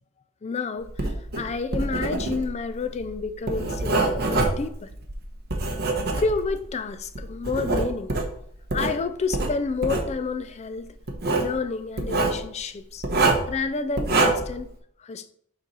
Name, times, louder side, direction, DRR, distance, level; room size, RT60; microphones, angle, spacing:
voice 1, 0.4-4.9 6.2-8.1 8.7-10.9 11.4-13.1 13.5-14.7 15.0-15.3, left 4 dB, 30° left, 0.4 m, -30 dB
Writing, 0.9-6.7 7.2-8.9 9.3-10.1 11.1-11.5 12.0-12.4 13.0-13.5 14.0-14.6, right 2 dB, 45° right, 1.0 m, -25 dB
7.1 x 3.1 x 5.3 m
head